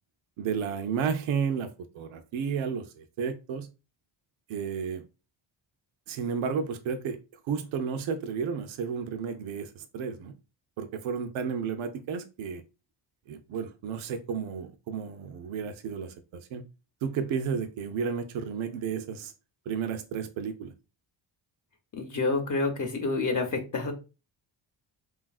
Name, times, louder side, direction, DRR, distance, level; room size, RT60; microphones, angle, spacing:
voice 1, 0.4-3.7 4.5-5.0 6.1-7.2 7.5-10.3 10.8-12.6 13.3-16.6 17.0-19.3 19.7-20.7, right 6 dB, 80° right, 0.5 m, -32 dB
voice 2, 21.9-23.9, left 3 dB, 40° left, 0.6 m, -28 dB
3.3 x 2.3 x 2.3 m
cardioid pair, 115°, 47 cm